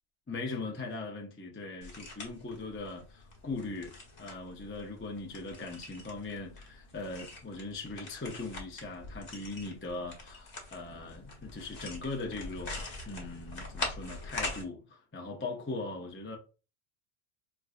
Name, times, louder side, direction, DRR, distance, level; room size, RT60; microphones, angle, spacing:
voice 1, 0.3-3.9 4.2-16.4, left 3 dB, 20° left, 0.3 m, -40 dB
sound 1, 1.8-14.6, left 2 dB, 45° left, 0.9 m, -43 dB
4.4 x 2.4 x 2.4 m
omnidirectional pair, 1.1 m